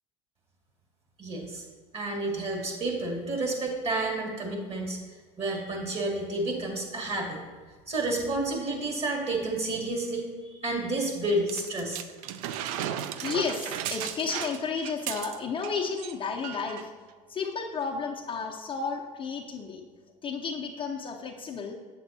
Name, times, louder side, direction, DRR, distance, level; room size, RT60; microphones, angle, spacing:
voice 1, 1.2-1.6 1.9-5.0 5.4-7.4 7.9-12.0, right 2 dB, 35° right, 0 dB, 2.1 m, -30 dB
sound 1, 11.5-15.7 16.0-16.1 16.4-16.9 17.6-17.7, right 10 dB, 75° right, 0.4 m, -35 dB
voice 2, 13.2-16.9 17.3-19.8 20.2-21.7, left 5 dB, 30° left, 0 dB, 0.7 m, -32 dB
8.0 x 6.9 x 2.8 m, 1.5 s
hypercardioid pair, 90°, 18 cm